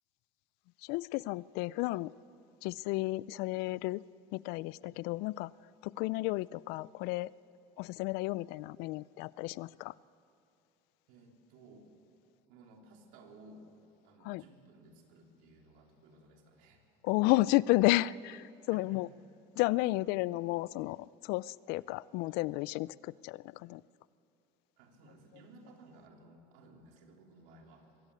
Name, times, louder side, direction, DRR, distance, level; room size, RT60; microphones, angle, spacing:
voice 1, 0.8-2.1 2.6-4.0 4.3-5.5 5.8-7.3 7.8-9.9 14.2-14.4 17.0-19.1 19.6-23.8, left 19 dB, 70° left, 22 dB, 0.4 m, -32 dB
voice 2, 11.1-11.9 12.5-13.7 14.0-16.8 18.6-19.0 21.8-21.9 24.8-27.9, right 2 dB, 80° right, 2 dB, 3.3 m, -57 dB
22.5 x 15.0 x 8.4 m, 2.7 s
cardioid pair, 130°, 17 cm